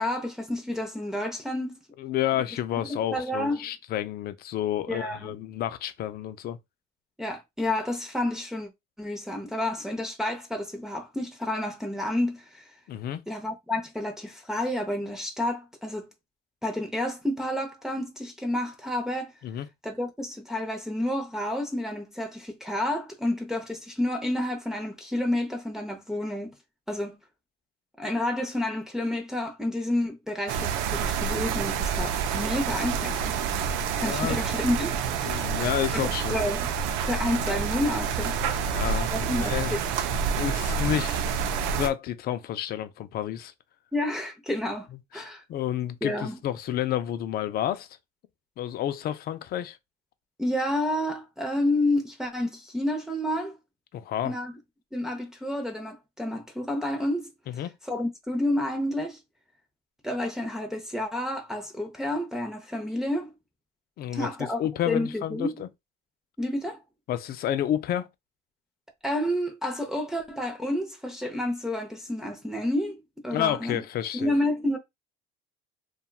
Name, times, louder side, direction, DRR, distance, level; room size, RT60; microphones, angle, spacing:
voice 1, 0.0-1.8 2.9-3.7 4.9-5.3 7.2-8.7 9.0-12.6 13.3-16.1 16.6-19.3 19.8-26.5 26.9-27.2 28.0-33.4 34.0-35.0 35.6-35.7 36.3-36.7 37.1-38.4 39.1-39.8 43.9-44.9 45.1-45.4 46.0-46.4 50.4-53.6 54.2-54.5 54.9-57.3 57.8-59.2 60.0-63.3 64.1-64.6 64.9-65.6 66.4-66.8 69.0-73.8 74.1-74.8, left 1 dB, ahead, 0.6 m, -30 dB
voice 2, 2.0-6.6 12.9-13.2 19.4-19.7 32.4-32.5 33.9-34.4 35.2-36.4 38.6-39.7 40.3-41.2 41.8-43.5 45.1-47.9 48.6-49.8 53.9-54.4 57.5-57.7 64.0-64.3 64.6-65.7 67.1-68.1 73.3-74.3, left 11 dB, 50° left, 0.4 m, -30 dB
sound 1, 30.5-41.9, right 6 dB, 80° right, 0.4 m, -28 dB
2.8 x 2.3 x 2.3 m
supercardioid pair, 95°, 20 cm